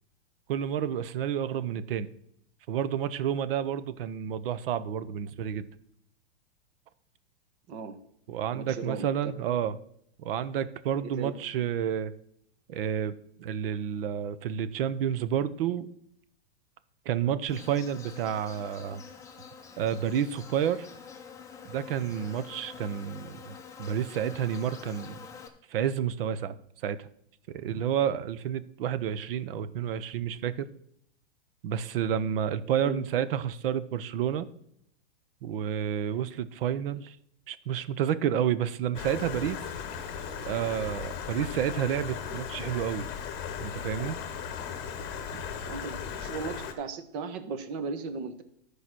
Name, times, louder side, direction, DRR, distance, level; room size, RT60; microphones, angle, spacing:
voice 1, 0.5-2.1 2.7-5.7 8.3-9.7 10.2-12.1 12.7-15.9 17.1-19.0 19.8-20.9 21.6-25.2 25.7-26.5 26.8-27.1 27.5-30.7 31.6-34.5 35.4-37.2 37.5-39.6 40.4-43.1 43.6-44.2 45.3-45.4, right 9 dB, 60° right, 15 dB, 0.8 m, -30 dB
voice 2, 7.7-8.0 8.5-9.3 11.0-11.3 32.8-33.0 45.6-48.4, right 4 dB, 40° right, 10 dB, 1.1 m, -37 dB
Insect, 17.5-25.5, left 6 dB, 10° left, 0.8 m, -47 dB
Stream, 38.9-46.7, left 7 dB, 30° left, 1.2 m, -37 dB
12.5 x 5.0 x 6.1 m, 0.72 s
supercardioid pair, 155°, 33 cm